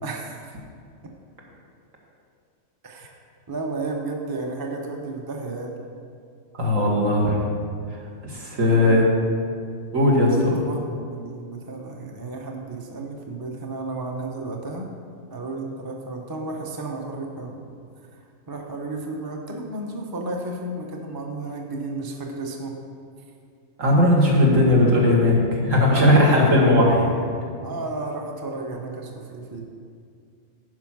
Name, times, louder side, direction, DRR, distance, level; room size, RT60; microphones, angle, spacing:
voice 1, 0.0-0.6 2.8-3.1 3.5-5.8 8.6-9.0 10.3-14.9 15.3-17.7 18.1-18.2 18.5-22.7 25.9-26.5 27.6-29.6, right 2 dB, 20° right, 1 dB, 0.7 m, -33 dB
voice 2, 6.6-7.5 8.2-9.1 9.9-10.6 23.8-27.1, left 1 dB, 75° right, -3 dB, 2.1 m, -18 dB
10.5 x 5.1 x 6.0 m, 2.3 s
omnidirectional pair, 1.4 m